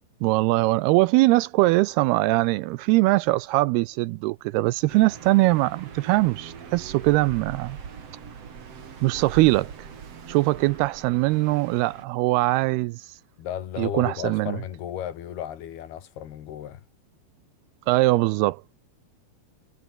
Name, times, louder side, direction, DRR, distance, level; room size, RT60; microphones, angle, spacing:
voice 1, 0.2-7.8 9.0-9.9 10.3-13.2 13.8-14.6 17.9-18.6, right 20 dB, 85° right, 2.4 m, -22 dB
sound 1, 4.9-12.0, right 6 dB, 40° right, 3.3 m, -41 dB
voice 2, 13.4-16.9, left 10 dB, 70° left, 3.9 m, -34 dB
omnidirectional pair, 4.9 m